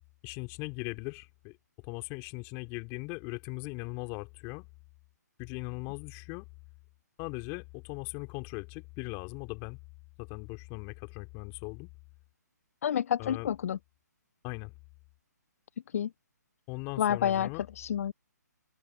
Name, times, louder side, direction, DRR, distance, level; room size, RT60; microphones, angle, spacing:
voice 1, 0.2-1.6 1.8-4.7 5.4-6.5 7.2-9.8 10.2-11.9 13.2-13.5 14.4-14.7 16.7-17.7, left 30 dB, 25° left, 3.0 m, -39 dB
voice 2, 12.8-13.8 15.9-16.1 17.0-17.5 17.8-18.1, left 9 dB, 55° left, 0.4 m, -28 dB
figure-of-eight pair, 140°, 10 cm